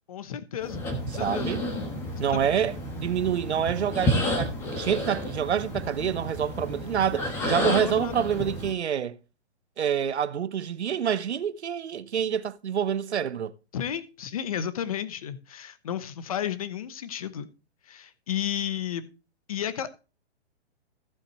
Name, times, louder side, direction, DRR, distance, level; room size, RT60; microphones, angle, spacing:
voice 1, 0.1-1.5 2.3-2.5 7.6-8.3 13.7-17.5 17.9-19.1 19.5-19.9, left 9 dB, 35° left, 0.9 m, -33 dB
sound 1, 0.6-8.7, left 1 dB, 5° left, 1.2 m, -31 dB
voice 2, 1.1-1.7 2.2-9.2 9.8-13.5, right 8 dB, 85° right, 1.0 m, -27 dB
15.0 x 7.4 x 3.1 m
hypercardioid pair, 175°, 32 cm